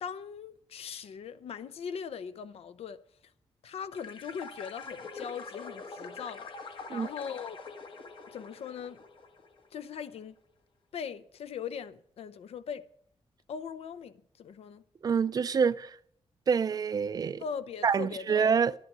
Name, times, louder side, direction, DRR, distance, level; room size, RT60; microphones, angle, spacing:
voice 1, 0.0-3.0 3.6-6.5 6.9-7.6 8.3-9.0 9.7-10.4 10.9-12.9 13.5-14.8 17.4-18.5, left 7 dB, 75° left, 0.7 m, -40 dB
sound 1, 3.9-9.7, left 4 dB, 55° left, 1.3 m, -44 dB
voice 2, 15.0-16.0 16.5-17.4 17.8-18.7, right 6 dB, 40° right, 0.4 m, -26 dB
11.0 x 10.5 x 6.1 m
wide cardioid pair, 165°, 10 cm